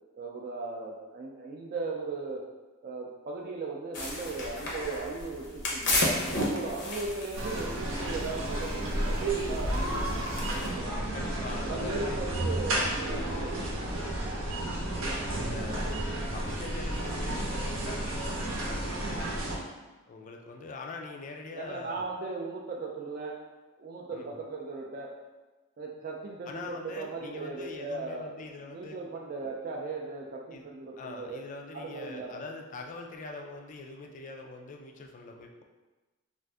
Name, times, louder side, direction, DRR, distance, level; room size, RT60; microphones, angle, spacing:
voice 1, 0.2-2.5 2.8-9.9 10.7-10.9 11.6-13.6 21.5-23.4 23.8-25.1 25.8-31.4 31.7-32.4, right 3 dB, 45° right, -1 dB, 0.3 m, -37 dB
sound 1, 3.9-10.7, left 1 dB, 60° left, 0.7 m, -34 dB
sound 2, 7.3-19.6, right 1 dB, 80° right, 0.7 m, -32 dB
voice 2, 11.1-12.1 14.8-15.9 16.3-19.5 20.1-22.1 24.1-24.4 26.5-29.0 30.5-30.6 31.0-35.6, left 3 dB, 40° left, 2 dB, 0.3 m, -43 dB
2.5 x 2.5 x 3.3 m, 1.2 s
head